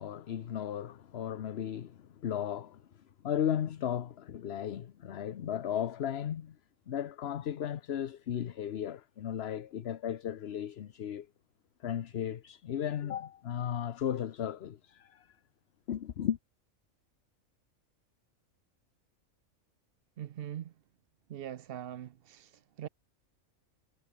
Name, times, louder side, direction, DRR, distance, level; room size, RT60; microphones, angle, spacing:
voice 1, 0.0-2.8 3.2-6.6 6.9-11.3 11.8-15.4 15.9-16.4, left 9 dB, 55° left, 0.9 m, -35 dB
voice 2, 20.2-20.7 21.3-22.9, right 11 dB, 60° right, 0.7 m, -42 dB
omnidirectional pair, 1.4 m